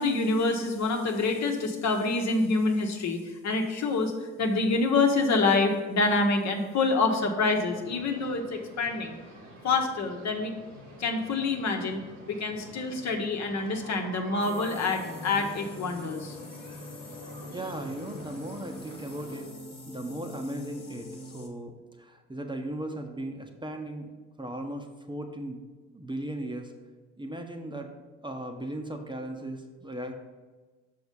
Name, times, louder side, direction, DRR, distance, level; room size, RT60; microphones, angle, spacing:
voice 1, 0.0-4.1 4.4-9.2 9.6-10.5 11.0-12.0 12.3-16.4, left 3 dB, 55° left, 3 dB, 1.2 m, -26 dB
sound 1, 7.3-19.4, right 1 dB, 75° right, 2.2 m, -47 dB
sound 2, 14.4-21.5, left 2 dB, 30° left, 1.6 m, -43 dB
voice 2, 17.5-19.5 19.9-24.1 24.4-25.6 25.9-26.7 27.2-27.9 28.2-30.1, right 1 dB, 15° right, 3 dB, 0.9 m, -37 dB
6.2 x 4.9 x 5.3 m, 1.3 s
hypercardioid pair, 55°, 34 cm